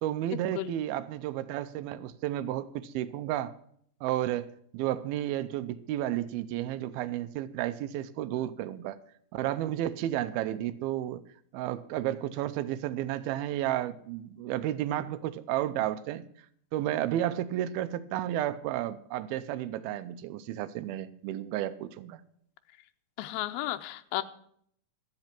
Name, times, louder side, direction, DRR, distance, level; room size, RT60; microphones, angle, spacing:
voice 1, 0.0-3.5 4.0-4.5 4.7-9.0 9.3-11.2 11.5-16.2 16.7-22.2, right 13 dB, 90° right, 14 dB, 2.6 m, -32 dB
voice 2, 23.2-24.2, left 15 dB, 90° left, 8 dB, 2.6 m, -33 dB
13.0 x 9.0 x 5.9 m, 0.65 s
omnidirectional pair, 4.2 m